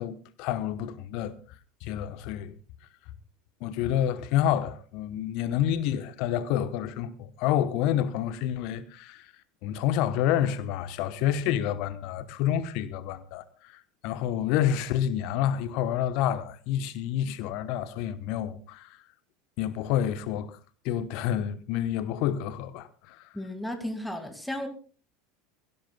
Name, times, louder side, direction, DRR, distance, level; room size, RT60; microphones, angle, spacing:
voice 1, 0.0-1.4 1.8-2.5 3.6-9.3 9.6-19.0 19.6-20.6 20.8-23.3, left 10 dB, 50° left, 1.0 m, -28 dB
voice 2, 23.3-24.7, left 1 dB, 5° left, 2.3 m, -34 dB
22.0 x 16.5 x 2.3 m
figure-of-eight pair, 75°, 0 cm